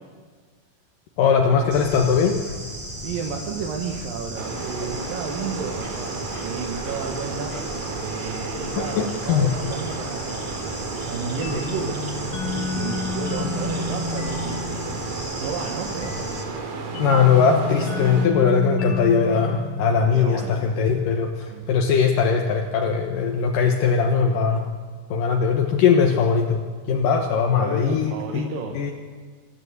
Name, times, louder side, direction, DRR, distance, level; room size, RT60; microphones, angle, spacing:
voice 1, 1.2-2.4 8.8-9.5 17.0-24.6 25.1-26.6 26.9-28.5 28.7-28.9, left 6 dB, 65° left, 2 dB, 2.2 m, -20 dB
Bird / Insect, 1.7-16.4, equal, 10° right, 1.6 m, -35 dB
voice 2, 3.0-7.5 7.9-9.0 9.2-10.6 11.1-12.1 12.4-14.7 15.4-16.2 20.0-20.6 21.5-21.7 27.6-28.8, right 5 dB, 60° right, 1 dB, 2.7 m, -32 dB
sound 1, 4.4-18.3, right 4 dB, 75° right, 4.5 m, -33 dB
sound 2, 11.4-20.8, left 3 dB, 90° left, 4.7 m, -32 dB
26.0 x 13.5 x 8.1 m, 1.5 s
omnidirectional pair, 5.3 m